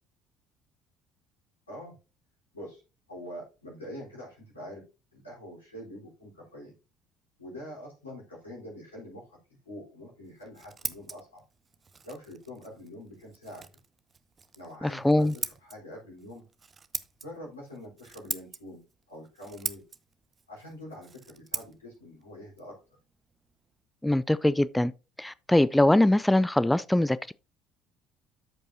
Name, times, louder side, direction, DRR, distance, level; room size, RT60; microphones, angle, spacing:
voice 1, 1.7-2.0 2.5-2.8 3.1-4.8 5.1-6.7 7.4-9.4 9.7-11.4 12.0-13.6 14.5-16.5 17.2-18.8 19.1-19.8 20.5-22.8, left 1 dB, 85° left, 3.8 m, -44 dB
Scissors, 10.2-23.8, right 5 dB, 30° right, 0.7 m, -42 dB
voice 2, 14.8-15.3 24.0-24.9 25.2-27.3, left 1 dB, 5° left, 0.3 m, -22 dB
13.0 x 5.3 x 2.7 m
figure-of-eight pair, 55°, 0 cm